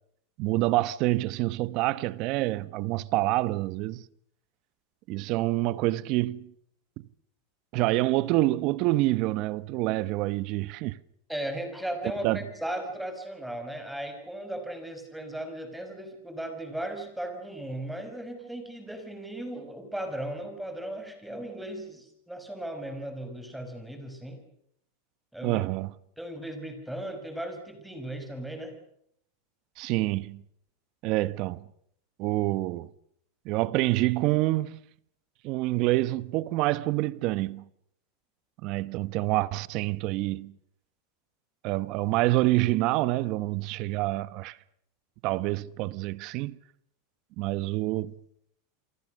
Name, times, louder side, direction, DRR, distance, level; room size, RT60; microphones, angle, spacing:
voice 1, 0.4-4.0 5.1-6.5 7.0-7.1 7.7-11.0 12.2-12.4 25.4-25.9 29.8-30.4 31.0-31.6 32.2-32.9 33.4-34.8 35.4-37.6 38.6-40.5 41.6-44.6 45.2-46.6 47.4-48.1, right 18 dB, 45° right, 1.0 m, -27 dB
voice 2, 11.3-24.4 25.3-25.6 26.2-28.8, right 1 dB, 5° right, 5.6 m, -36 dB
28.5 x 24.5 x 6.5 m
supercardioid pair, 145°, 0 cm